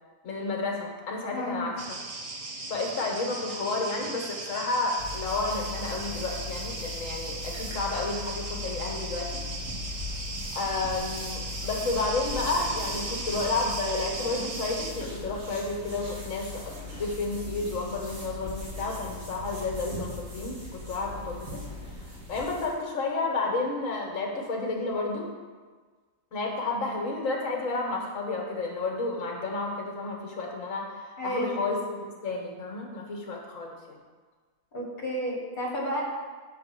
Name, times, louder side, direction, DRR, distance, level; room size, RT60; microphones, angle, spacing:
voice 1, 0.2-2.0 2.7-9.4 10.5-21.6 22.3-25.3 26.3-34.0, left 3 dB, 65° left, 0 dB, 1.6 m, -31 dB
voice 2, 1.3-1.7 31.2-31.6 34.7-36.0, equal, 35° left, -4 dB, 1.8 m, -31 dB
sound 1, 1.8-14.9, right 3 dB, 40° right, 0.5 m, -37 dB
sound 2, 5.0-22.8, left 3 dB, 65° right, 2.1 m, -39 dB
6.4 x 4.7 x 6.0 m, 1.5 s
omnidirectional pair, 1.5 m